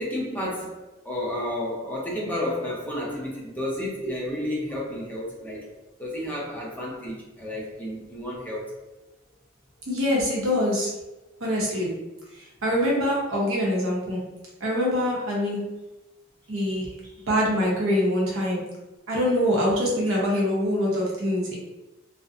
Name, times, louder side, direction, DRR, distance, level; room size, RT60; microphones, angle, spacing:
voice 1, 0.0-5.7 6.0-8.7, left 1 dB, 10° left, -5 dB, 0.5 m, -31 dB
voice 2, 9.9-10.9 11.4-11.9 12.3-14.2 14.6-15.6 16.5-16.9 17.3-18.6 19.1-21.6, equal, 85° right, -3 dB, 0.8 m, -24 dB
2.5 x 2.0 x 2.4 m, 1.0 s
head